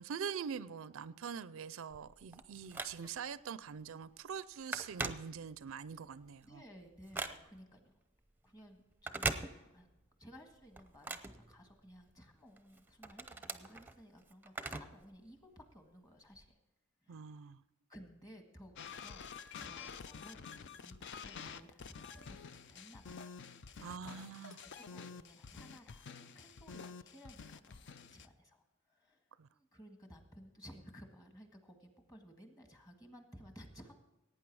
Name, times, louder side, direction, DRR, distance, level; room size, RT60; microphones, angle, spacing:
voice 1, 0.0-6.6 17.1-17.6 23.8-24.6 29.4-29.5, right 6 dB, 65° right, 16 dB, 0.4 m, -44 dB
Telephone, 1.9-3.3 3.8-4.0 4.3-5.8 6.2-7.7 8.9-10.0 10.3-12.1 12.6-15.1 15.4-15.5 16.3-16.4, right 3 dB, 10° right, 0.6 m, -42 dB
voice 2, 6.4-8.0 8.4-9.9 10.2-16.6 17.0-17.5 17.9-23.3 23.8-24.2 24.6-34.0, equal, 20° left, 5 dB, 1.6 m, -57 dB
sound 1, 18.8-28.3, left 6 dB, 60° left, 0.5 m, -49 dB
17.5 x 9.1 x 4.7 m, 1.0 s
head